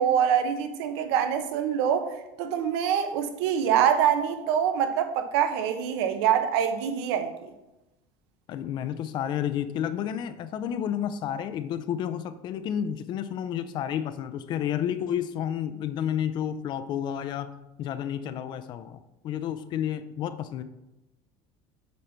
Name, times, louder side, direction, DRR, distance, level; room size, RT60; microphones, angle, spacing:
voice 1, 0.0-2.1 2.4-7.5, right 8 dB, 90° right, 8 dB, 1.0 m, -25 dB
voice 2, 8.5-17.5 17.8-20.6, left 9 dB, 35° left, 12 dB, 0.4 m, -31 dB
8.3 x 5.6 x 4.5 m, 0.96 s
cardioid pair, 175°, 13 cm